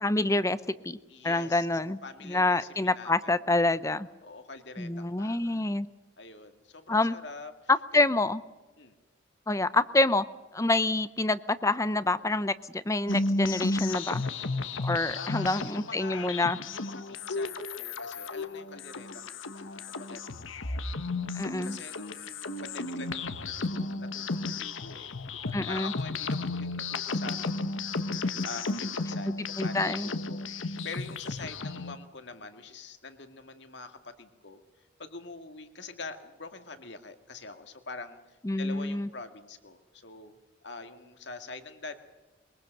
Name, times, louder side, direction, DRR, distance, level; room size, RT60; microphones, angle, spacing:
voice 1, 0.0-0.6 0.8-1.0 1.2-2.0 2.3-4.1 4.8-5.9 6.9-7.2 7.9-8.4 9.5-10.2 10.5-14.2 14.8-16.6 21.3-21.8 25.5-25.9 29.6-30.1 38.4-39.1, left 2 dB, 15° left, 14 dB, 0.6 m, -27 dB
voice 2, 1.1-1.7 2.0-3.3 4.2-5.6 6.2-8.0 8.8-8.9 15.2-16.3 16.7-30.4 30.8-34.6 35.0-40.4 40.6-42.0, left 3 dB, 60° left, 7 dB, 2.1 m, -45 dB
sound 1, 13.1-31.9, left 3 dB, 85° left, 1.3 m, -33 dB
22.5 x 22.5 x 6.6 m, 1.2 s
head